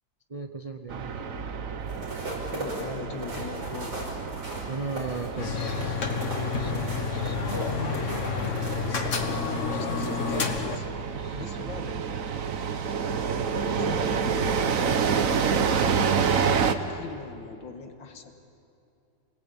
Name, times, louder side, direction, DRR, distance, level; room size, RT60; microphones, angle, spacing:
voice 1, 0.3-1.3 4.7-6.0 6.4-7.4 9.7-9.8 11.2-11.4, right 3 dB, 35° right, 5 dB, 0.5 m, -37 dB
sound 1, 0.9-16.7, right 6 dB, 50° right, 1.2 m, -29 dB
sound 2, 1.8-10.0 10.5-10.7, right 1 dB, 70° right, 5.9 m, -38 dB
voice 2, 2.5-4.0 8.4-8.8 9.2-10.9 11.3-12.4 13.3-18.3, left 5 dB, 80° left, 5 dB, 2.3 m, -40 dB
sound 3, 5.4-10.8, left 5 dB, 45° left, 1.8 m, -29 dB
27.0 x 19.5 x 8.7 m, 2.6 s
omnidirectional pair, 2.0 m